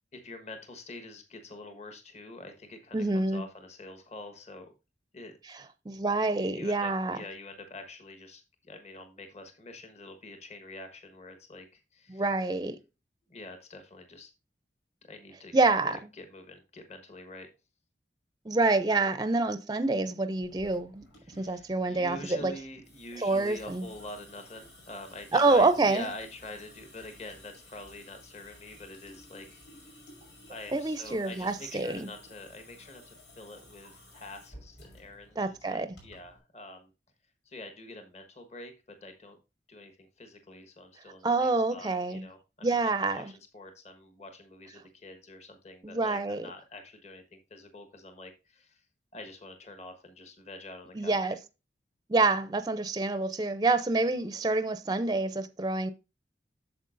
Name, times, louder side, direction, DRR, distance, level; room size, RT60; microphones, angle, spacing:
voice 1, 0.1-4.7 5.1-5.3 6.3-12.2 13.3-14.3 15.0-15.5 15.8-17.5 21.2-29.9 30.5-36.9 37.4-38.7 39.0-39.4 39.7-42.8 43.1-48.8 49.1-51.2, left 2 dB, 40° left, 1.3 m, -46 dB
voice 2, 2.9-3.4 5.9-7.2 12.1-12.8 15.5-16.0 18.5-21.0 21.4-22.5 23.2-23.9 25.3-26.1 30.7-32.1 35.4-36.0 41.2-42.2 42.6-43.3 45.8-46.5 50.9-51.4 52.1-55.9, right 3 dB, 20° right, 0.5 m, -27 dB
Water tap faucet / Sink (filling or washing) / Drip, 20.4-36.4, left 1 dB, 80° left, 5.5 m, -54 dB
9.3 x 7.0 x 2.5 m
head